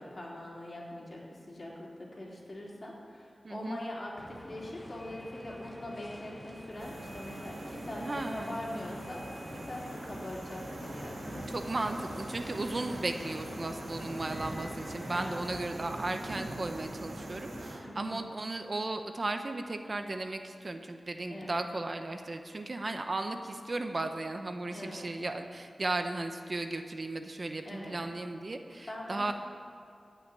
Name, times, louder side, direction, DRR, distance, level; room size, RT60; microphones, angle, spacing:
voice 1, 0.0-11.6 15.1-15.7 17.8-18.3 21.3-21.7 24.7-25.1 27.6-28.1 28.9-29.3, left 1 dB, 40° left, -4 dB, 3.8 m, -42 dB
voice 2, 3.4-3.8 8.0-8.5 11.5-29.3, right 2 dB, 45° right, 6 dB, 0.9 m, -35 dB
sound 1, 4.2-15.5, left 1 dB, 25° left, 1.2 m, -48 dB
sound 2, 6.8-17.8, right 1 dB, 85° right, 2.6 m, -42 dB
15.5 x 5.8 x 9.9 m, 2.6 s
wide cardioid pair, 75°, 0 cm